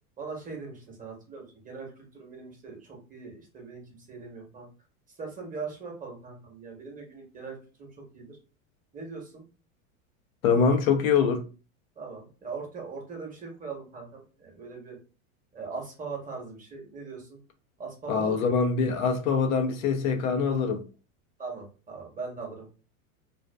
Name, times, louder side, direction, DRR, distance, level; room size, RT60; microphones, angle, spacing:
voice 1, 0.2-4.7 5.2-8.4 8.9-9.4 12.0-15.0 15.5-17.4 17.8-18.5 21.4-22.7, right 4 dB, 20° right, 0.9 m, -40 dB
voice 2, 10.4-11.4 18.1-20.8, left 5 dB, 80° left, 0.7 m, -24 dB
2.5 x 2.2 x 2.2 m
hypercardioid pair, 115°, 42 cm